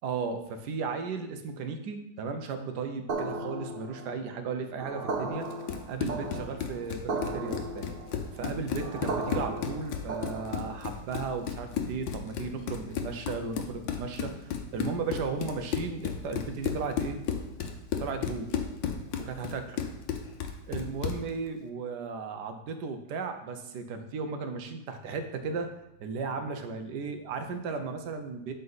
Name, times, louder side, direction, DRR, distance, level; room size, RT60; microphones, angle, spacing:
voice 1, 0.0-5.5 5.9-7.9 8.3-17.2 18.0-18.5 19.2-19.8 20.7-25.7 26.0-28.5, right 5 dB, 70° right, 7 dB, 1.4 m, -35 dB
sound 1, 3.1-10.9, right 2 dB, 45° right, 0.8 m, -36 dB
Run, 5.5-21.3, left 7 dB, 85° left, 1.5 m, -34 dB
12.0 x 4.1 x 4.1 m, 0.84 s
omnidirectional pair, 2.0 m